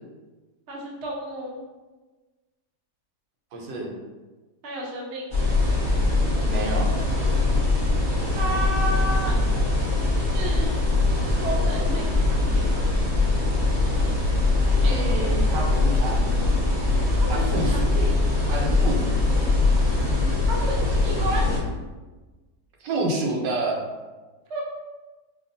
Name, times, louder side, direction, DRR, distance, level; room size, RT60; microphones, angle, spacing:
voice 1, 0.7-1.6 4.6-5.3 8.3-9.4 10.3-10.8 11.4-12.9 17.3-18.2 20.5-21.5 24.5-24.6, right 1 dB, 55° right, -3 dB, 0.8 m, -31 dB
voice 2, 3.5-3.9 6.5-6.9 14.8-16.4 17.3-17.9 18.5-19.4 22.8-23.8, right 2 dB, 85° right, 0 dB, 1.4 m, -29 dB
sound 1, 5.3-21.6, left 2 dB, 30° right, 0.5 m, -22 dB
sound 2, 14.8-15.8 16.2-16.8 17.6-18.1 18.5-19.5 19.9-20.5 21.3-21.8, left 2 dB, 60° left, 0.7 m, -41 dB
5.0 x 2.5 x 2.6 m, 1.2 s
omnidirectional pair, 1.9 m